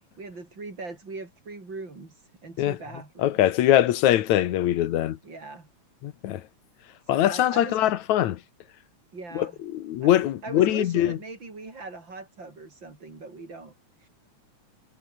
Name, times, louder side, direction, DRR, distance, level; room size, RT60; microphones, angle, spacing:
voice 1, 0.2-3.5 4.4-4.6 5.2-5.7 7.0-7.9 9.1-9.6 10.0-10.1 10.4-14.1, right 3 dB, 35° right, 5.7 m, -40 dB
voice 2, 3.2-5.2 6.0-6.4 7.1-8.4 9.4-9.5 9.7-11.2, left 12 dB, 75° left, 2.4 m, -22 dB
omnidirectional pair, 3.4 m